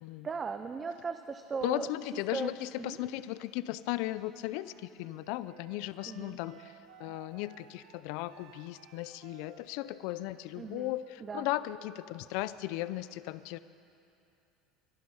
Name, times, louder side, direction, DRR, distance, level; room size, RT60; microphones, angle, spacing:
voice 1, 0.2-1.9 2.3-3.0 6.1-6.4 10.6-10.9 11.2-11.5, right 5 dB, 25° right, 8 dB, 0.5 m, -38 dB
voice 2, 1.6-6.7 7.0-13.6, left 16 dB, 70° left, 16 dB, 0.4 m, -36 dB
Wind instrument woodwind instrument, 4.5-12.0, right 9 dB, 75° right, 1.1 m, -58 dB
22.0 x 11.5 x 5.5 m, 2.7 s
cardioid pair, 135°, 0 cm